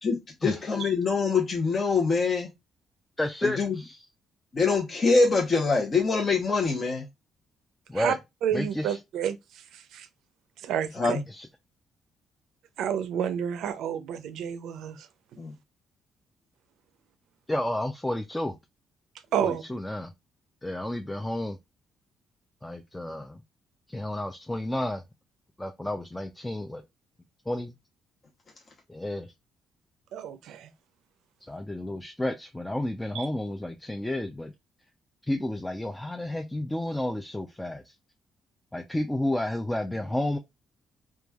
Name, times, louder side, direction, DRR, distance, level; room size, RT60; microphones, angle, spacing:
voice 1, 0.4-2.5 3.4-3.8 4.5-7.1 11.0-11.2 15.4-15.5, left 4 dB, 40° left, 0.7 m, -24 dB
voice 2, 3.2-4.0 7.9-8.2 8.5-9.0 11.3-11.5 17.5-18.6 19.4-20.1 20.6-21.6 22.6-23.4 23.9-25.0 25.6-26.8 27.5-27.7 28.9-29.3 31.4-34.5 35.3-37.8 38.7-40.4, left 1 dB, 10° left, 0.3 m, -31 dB
voice 3, 8.4-9.4 9.7-10.1 10.6-11.2 12.8-15.1 19.3-19.6 30.1-30.7 33.1-33.3, right 9 dB, 80° right, 0.4 m, -30 dB
3.0 x 2.3 x 2.3 m
cardioid pair, 90°, 0 cm